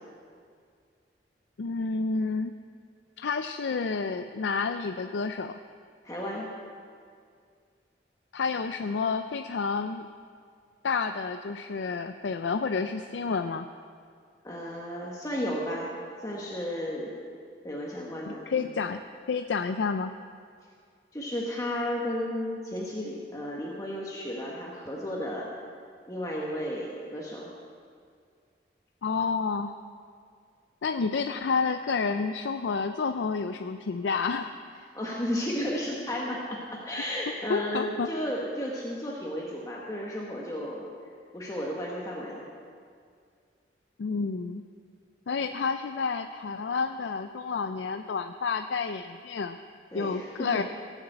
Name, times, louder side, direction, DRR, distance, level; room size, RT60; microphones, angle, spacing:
voice 1, 1.6-2.6 3.2-5.6 8.3-10.1 10.8-13.7 18.2-19.0 19.3-20.1 29.0-29.8 30.8-34.5 37.5-38.1 44.0-44.6 45.3-49.6 49.9-50.6, left 4 dB, 85° left, 8 dB, 0.4 m, -30 dB
voice 2, 6.0-6.5 14.4-17.1 17.6-18.7 21.1-25.5 26.1-27.5 34.9-40.9 41.3-42.5 49.9-50.6, equal, 20° left, -3 dB, 1.3 m, -33 dB
17.0 x 7.2 x 7.9 m, 2.2 s
head